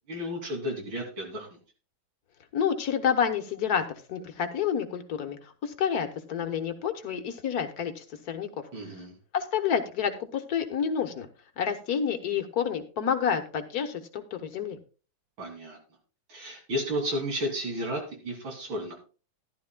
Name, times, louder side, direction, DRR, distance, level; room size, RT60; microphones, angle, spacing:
voice 1, 0.1-1.6 8.7-9.1 15.4-15.8 16.3-18.9, equal, 75° right, 1 dB, 3.6 m, -33 dB
voice 2, 2.5-3.8 4.1-8.5 9.3-11.3 11.6-14.8, left 7 dB, 55° left, 7 dB, 1.5 m, -29 dB
14.5 x 11.5 x 2.3 m, 0.35 s
omnidirectional pair, 2.2 m